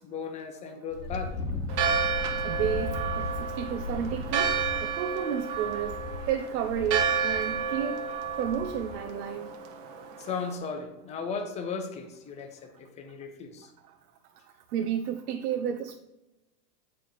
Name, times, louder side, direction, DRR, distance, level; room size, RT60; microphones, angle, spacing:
voice 1, 0.0-1.4 10.2-13.7, left 5 dB, 15° left, 4 dB, 0.6 m, -36 dB
Wind, 0.9-9.1, left 2 dB, 80° left, 1.4 m, -37 dB
Church bell, 1.7-10.6, right 5 dB, 50° right, 0.9 m, -31 dB
voice 2, 2.4-4.5 4.8-6.0 6.3-8.0 8.4-9.5 14.7-16.0, right 9 dB, 75° right, 6 dB, 0.7 m, -31 dB
8.4 x 4.8 x 3.9 m, 0.96 s
supercardioid pair, 150°, 47 cm